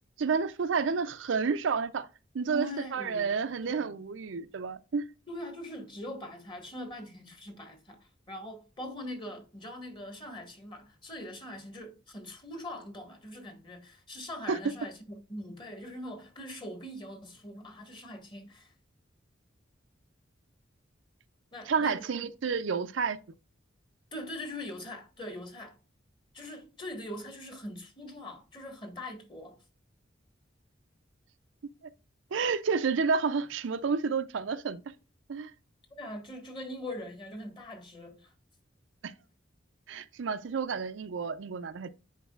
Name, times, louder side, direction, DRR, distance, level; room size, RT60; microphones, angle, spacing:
voice 1, 0.2-2.1 2.3-5.0 14.5-14.6 21.7-23.2 32.3-34.8 35.3-35.5 39.0-39.1 39.9-41.9, right 5 dB, 70° right, 0.5 m, -30 dB
voice 2, 2.5-4.0 5.3-18.7 21.5-22.3 24.1-25.8 26.3-29.6 36.0-38.3, left 1 dB, 25° left, 1.6 m, -42 dB
10.0 x 4.6 x 2.4 m
head